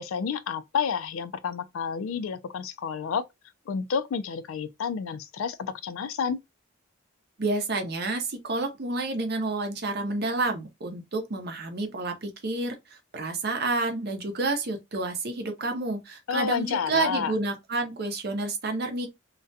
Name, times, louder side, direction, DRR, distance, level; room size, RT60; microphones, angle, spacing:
voice 1, 0.0-3.3 3.7-6.4 16.3-17.3, left 6 dB, 75° left, 0.3 m, -30 dB
voice 2, 7.4-19.1, right 2 dB, 45° right, 0.6 m, -29 dB
2.4 x 2.2 x 2.6 m
head